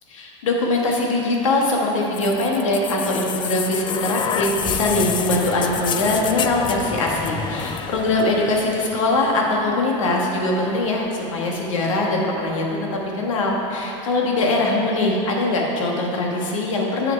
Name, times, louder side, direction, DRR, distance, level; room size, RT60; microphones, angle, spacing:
voice 1, 0.1-12.7 12.9-17.1, left 2 dB, 90° left, -1 dB, 1.4 m, -22 dB
sound 1, 2.1-10.0 11.1-11.2, left 7 dB, 30° left, 0.4 m, -29 dB
7.8 x 6.1 x 4.5 m, 3.0 s
hypercardioid pair, 105°, 16 cm